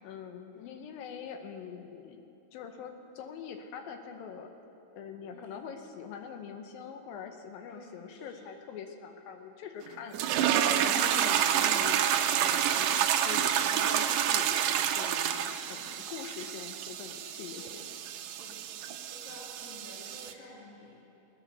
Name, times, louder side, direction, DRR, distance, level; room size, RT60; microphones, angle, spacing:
voice 1, 0.0-2.2 2.5-4.5 5.0-12.0 12.4-14.6 14.9-17.9, left 7 dB, 80° left, 6 dB, 2.6 m, -44 dB
voice 2, 7.7-8.5 12.7-13.0 15.6-15.8 17.5-17.8 18.4-18.6 19.0-20.9, equal, 45° left, -7 dB, 3.0 m, -51 dB
sound 1, 10.1-20.3, right 10 dB, 85° right, 1.7 m, -29 dB
19.0 x 10.0 x 6.9 m, 2.7 s
omnidirectional pair, 4.2 m